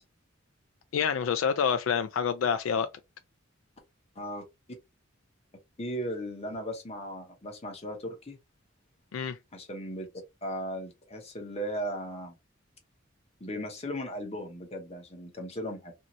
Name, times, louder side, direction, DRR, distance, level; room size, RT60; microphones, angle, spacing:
voice 1, 0.9-2.9 9.1-9.4, left 7 dB, 85° left, 0.3 m, -27 dB
voice 2, 5.8-8.4 9.5-10.1 10.4-12.4 13.4-15.9, equal, 30° left, 0.9 m, -37 dB
2.6 x 2.5 x 2.9 m
head